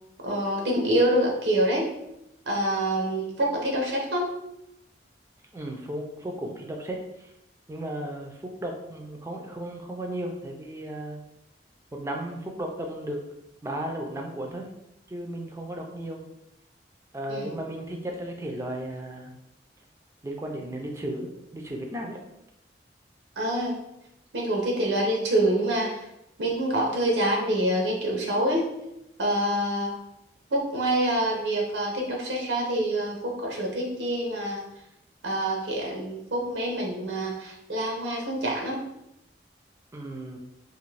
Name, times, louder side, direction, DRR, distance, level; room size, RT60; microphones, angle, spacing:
voice 1, 0.2-1.9 2.5-4.3 17.3-17.6 23.4-23.8 24.3-26.0 26.4-28.7 29.2-29.9 30.5-34.6 35.2-38.8, right 1 dB, 90° right, 0 dB, 0.7 m, -26 dB
voice 2, 5.5-7.3 7.7-8.3 8.6-11.2 11.9-13.2 13.6-14.7 15.1-16.3 17.1-19.3 20.2-22.2 39.9-40.4, right 1 dB, 15° right, 1 dB, 0.4 m, -35 dB
2.6 x 2.5 x 3.2 m, 0.85 s
head